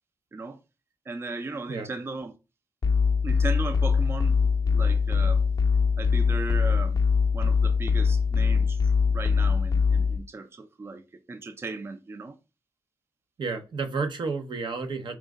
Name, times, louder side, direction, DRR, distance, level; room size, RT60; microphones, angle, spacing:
voice 1, 1.1-2.3 3.2-5.4 6.0-7.0 7.3-8.8 9.1-12.4, right 3 dB, 30° right, 0.4 m, -37 dB
sound 1, 2.8-10.2, left 5 dB, 45° left, 0.5 m, -23 dB
voice 2, 13.4-15.1, right 4 dB, 70° right, 0.7 m, -31 dB
4.6 x 2.1 x 3.5 m
cardioid pair, 80°, 8 cm